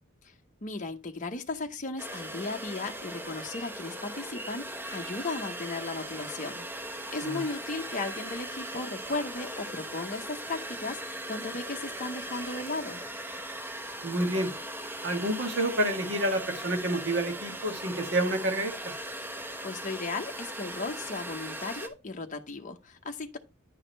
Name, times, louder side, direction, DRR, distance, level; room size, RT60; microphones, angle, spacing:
voice 1, 0.6-13.0 19.6-23.4, left 3 dB, 35° left, 0.7 m, -36 dB
sound 1, 2.0-21.9, right 1 dB, 10° right, 0.9 m, -39 dB
voice 2, 14.0-14.5 15.0-18.9, right 1 dB, 55° right, 1.6 m, -29 dB
10.0 x 4.8 x 4.4 m
head